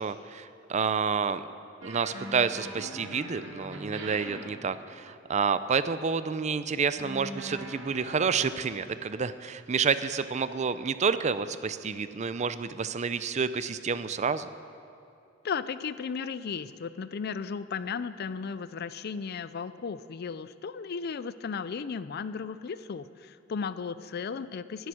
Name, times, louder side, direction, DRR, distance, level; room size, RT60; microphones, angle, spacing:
voice 1, 0.0-1.4 1.8-14.5, right 5 dB, 35° right, 13 dB, 0.4 m, -29 dB
sound 1, 1.8-5.1 6.9-8.5, right 1 dB, 85° right, 2.1 m, -41 dB
voice 2, 15.4-24.9, left 5 dB, 55° left, 14 dB, 0.4 m, -35 dB
18.5 x 8.0 x 6.3 m, 2.6 s
head